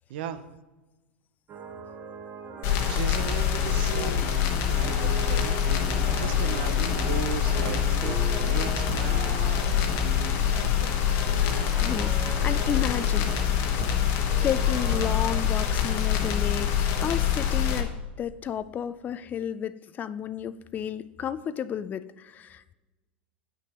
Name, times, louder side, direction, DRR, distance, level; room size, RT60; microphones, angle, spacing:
voice 1, 0.1-0.5 2.8-4.1 4.7-5.9 6.2-9.7 10.0-11.0, right 9 dB, 65° right, 11 dB, 0.6 m, -37 dB
sound 1, 1.5-15.4, right 4 dB, 35° right, 0.8 m, -39 dB
sound 2, 2.6-17.8, left 9 dB, 50° left, 1.0 m, -25 dB
voice 2, 11.8-13.8 14.4-22.7, left 9 dB, 30° left, 14 dB, 0.3 m, -32 dB
8.4 x 5.9 x 2.9 m, 1.1 s
hypercardioid pair, 95°, 6 cm